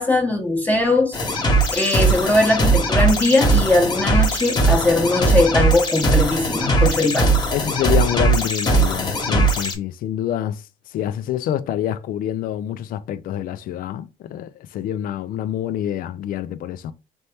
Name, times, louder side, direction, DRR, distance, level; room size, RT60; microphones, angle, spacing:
voice 1, 0.0-1.4 1.7-7.3, left 2 dB, 10° left, 0.9 m, -20 dB
sound 1, 1.1-9.7, right 2 dB, 25° left, 1.2 m, -19 dB
voice 2, 7.5-10.6 10.9-16.9, left 11 dB, 60° left, 0.4 m, -26 dB
4.3 x 2.8 x 3.4 m
cardioid pair, 110°, 17 cm